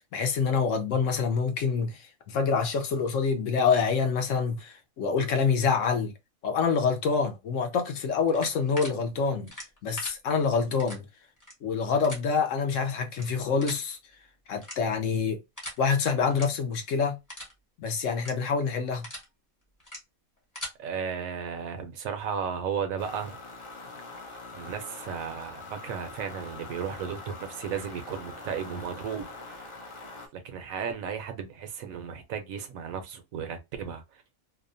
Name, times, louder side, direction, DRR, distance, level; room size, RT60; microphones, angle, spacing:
voice 1, 0.1-6.1 6.4-9.5 9.8-11.1 11.6-14.0 14.5-15.4 15.8-17.2 17.8-19.1, left 5 dB, 70° left, 0.9 m, -26 dB
sound 1, 8.3-8.9 9.5-10.1 10.8-11.0 11.4-11.5 12.0-12.2 13.1-13.2 13.6-13.8 14.6-15.0 15.6-15.8 16.3-16.4 16.8-16.9 17.3-17.5 18.1-18.3 18.8-19.2 19.8-20.0 20.4-20.7, left 1 dB, 15° left, 0.8 m, -39 dB
voice 2, 20.8-23.4 24.5-29.7 30.3-34.0, right 7 dB, 75° right, 1.0 m, -34 dB
sound 2, 23.0-30.3, left 3 dB, 40° left, 0.4 m, -43 dB
2.8 x 2.1 x 2.5 m
omnidirectional pair, 1.4 m